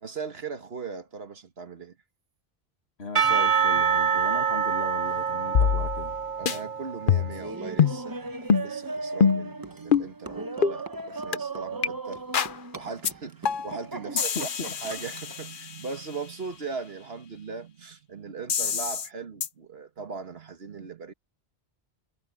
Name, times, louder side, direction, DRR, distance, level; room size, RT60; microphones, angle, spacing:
voice 1, 0.0-2.0 6.4-12.2 12.7-21.1, right 5 dB, 70° right, 1.8 m, -39 dB
voice 2, 3.0-6.1 14.1-14.7, left 3 dB, 80° left, 2.4 m, -37 dB
Percussion / Church bell, 3.2-7.6, right 7 dB, 45° right, 0.4 m, -26 dB
sound 1, 5.5-6.2 6.5-6.6 7.1-7.4 7.8-8.0 8.5-8.7 9.2-9.5 9.9-10.1 10.6-10.8 11.3-11.4 11.8-11.9 12.3-12.6 13.0-13.1 13.4-13.8 14.2-16.0 18.5-19.1 19.4-19.5, left 7 dB, 55° left, 0.9 m, -24 dB
Laughter, 7.3-15.4, right 3 dB, 20° right, 0.8 m, -37 dB
omnidirectional pair, 1.1 m